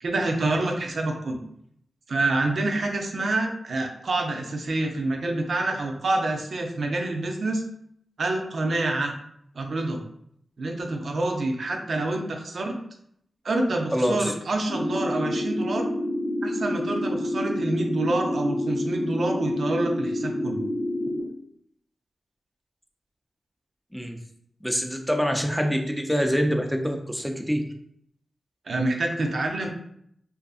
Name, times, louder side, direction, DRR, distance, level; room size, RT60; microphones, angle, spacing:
voice 1, 0.0-1.4 2.1-7.6 8.2-9.1 9.6-10.0 10.6-12.7 13.4-15.8 16.4-20.6 28.7-29.7, right 2 dB, 70° right, 3 dB, 0.4 m, -27 dB
voice 2, 13.9-14.3 23.9-24.2 24.6-27.6, equal, ahead, 3 dB, 0.5 m, -25 dB
sound 1, 14.7-21.2, left 1 dB, 85° left, 0.7 m, -28 dB
2.5 x 2.5 x 2.4 m, 0.71 s
cardioid pair, 40°, 0 cm